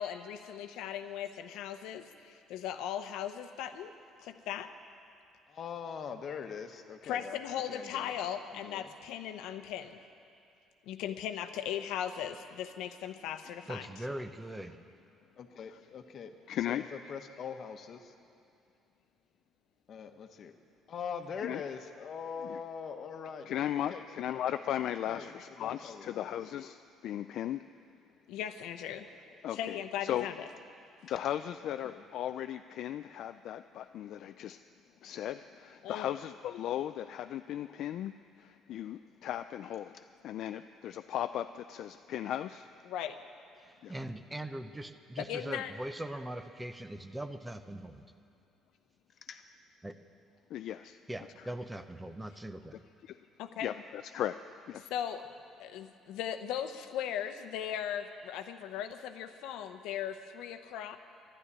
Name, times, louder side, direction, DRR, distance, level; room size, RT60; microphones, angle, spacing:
voice 1, 0.0-3.9 4.2-4.7 7.0-10.0 10.9-13.9 28.3-29.1 29.5-30.4 35.8-36.1 42.9-43.2 45.2-45.7 53.4-53.7 54.8-55.2 55.6-61.0, left 9 dB, 80° left, 8 dB, 0.8 m, -38 dB
voice 2, 5.5-7.4 7.7-8.1 8.5-8.9 15.4-18.1 19.9-20.6 20.9-23.5 23.9-24.4 25.1-26.3 30.1-30.5 31.1-31.2 31.6-32.0 49.1-49.5, left 6 dB, 45° left, 7 dB, 1.1 m, -43 dB
voice 3, 13.7-14.8 43.6-48.0 49.8-50.0 51.1-52.8, right 1 dB, 10° right, 9 dB, 0.6 m, -41 dB
voice 4, 16.5-16.8 21.4-21.6 22.4-22.6 23.5-27.6 29.4-30.3 31.1-34.6 35.0-40.0 40.2-42.7 43.8-43.9 50.5-51.0 53.0-53.2 53.6-54.4 54.7-54.8, left 11 dB, 60° left, 9 dB, 0.3 m, -36 dB
12.0 x 12.0 x 9.8 m, 2.5 s
cardioid pair, 130°, 0 cm